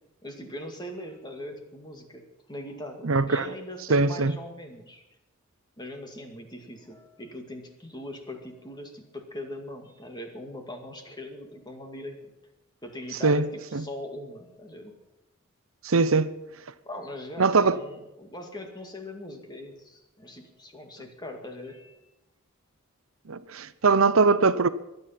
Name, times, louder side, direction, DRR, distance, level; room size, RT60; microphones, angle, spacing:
voice 1, 0.2-2.2 2.5-5.0 5.8-12.3 12.8-15.0 16.9-22.0, left 1 dB, 20° left, 2.2 m, -41 dB
voice 2, 3.0-3.5 3.9-4.3 13.2-13.5 13.7-13.8 15.8-16.3 17.4-17.8 23.3-24.7, right 4 dB, 70° right, 0.7 m, -21 dB
23.5 x 9.7 x 5.9 m
head